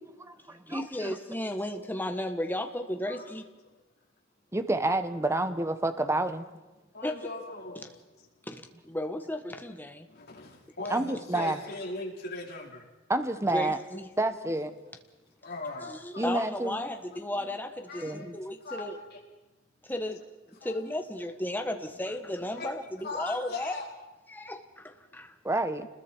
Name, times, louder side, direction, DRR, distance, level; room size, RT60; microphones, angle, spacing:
voice 1, 0.2-1.2 4.5-6.4 10.9-11.6 13.1-13.8 14.2-14.7 16.2-16.8 18.0-18.4 25.4-25.8, right 2 dB, 15° right, 10 dB, 1.0 m, -29 dB
voice 2, 0.7-3.4 7.0-7.1 8.5-10.1 13.5-14.1 15.9-19.0 19.8-20.2 20.6-23.8 24.3-25.3, left 1 dB, 10° left, 5 dB, 1.4 m, -34 dB
voice 3, 6.9-8.3 10.1-12.9 13.7-14.0 14.4-14.8 15.4-16.8 17.9-18.4 18.6-19.2 20.6-20.8 21.7-21.8 22.4-22.7 23.0-23.9 25.8-25.9, left 3 dB, 55° left, -2 dB, 4.4 m, -40 dB
29.5 x 20.5 x 4.6 m, 1.1 s
head